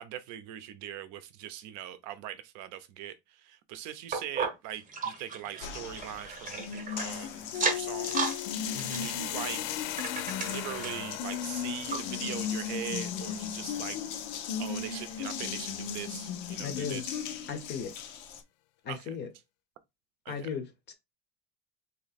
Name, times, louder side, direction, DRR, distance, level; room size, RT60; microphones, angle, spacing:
voice 1, 0.0-8.3 8.6-9.8 10.4-14.0 14.3-14.4 14.6-17.2 18.9-19.1 20.2-20.5, right 11 dB, 50° right, 0.6 m, -41 dB
sound 1, 4.1-7.1 7.5-8.4 8.7-11.1 11.5-11.6 11.9-12.0 12.6-12.7, right 5 dB, 20° right, 0.9 m, -35 dB
Water tap faucet, 5.6-18.4, left 7 dB, 90° left, 0.9 m, -36 dB
sound 2, 7.9-15.9, left 14 dB, 65° left, 0.5 m, -42 dB
voice 2, 8.7-9.1 16.6-17.0 17.5-17.9 18.8-19.3 20.3-20.9, left 6 dB, 30° left, 0.7 m, -37 dB
3.0 x 2.8 x 4.1 m
cardioid pair, 165°, 38 cm